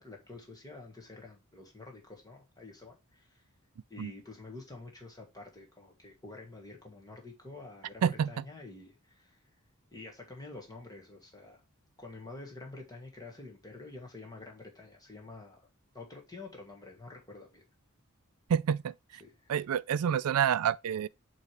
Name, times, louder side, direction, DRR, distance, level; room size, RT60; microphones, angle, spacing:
voice 1, 0.0-3.4 3.9-9.4 9.9-11.6 12.0-15.7 15.9-17.6 19.2-19.6, left 3 dB, 15° left, 1.5 m, -48 dB
voice 2, 18.5-18.9 19.5-21.1, right 8 dB, 80° right, 0.4 m, -28 dB
8.1 x 3.1 x 4.6 m
head